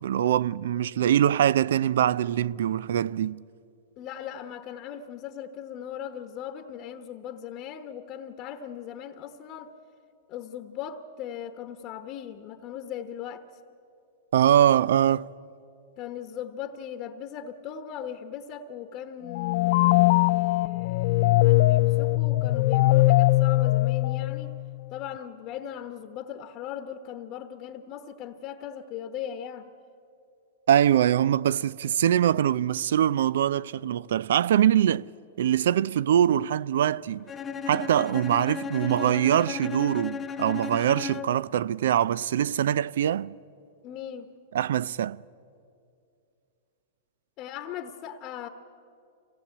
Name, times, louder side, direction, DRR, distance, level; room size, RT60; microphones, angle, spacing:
voice 1, 0.0-3.4 14.3-15.3 30.7-35.1 35.4-37.3 37.7-43.3 44.5-45.2, right 10 dB, 75° right, 0.4 m, -23 dB
voice 2, 4.0-9.7 10.3-13.4 16.0-24.5 24.9-29.7 43.8-44.3 47.4-48.5, left 9 dB, 40° left, 1.1 m, -38 dB
sound 1, 19.3-24.8, left 18 dB, 55° left, 0.5 m, -21 dB
Bowed string instrument, 37.3-41.5, left 6 dB, 20° left, 0.8 m, -35 dB
25.0 x 17.5 x 8.6 m
hypercardioid pair, 135°, 0 cm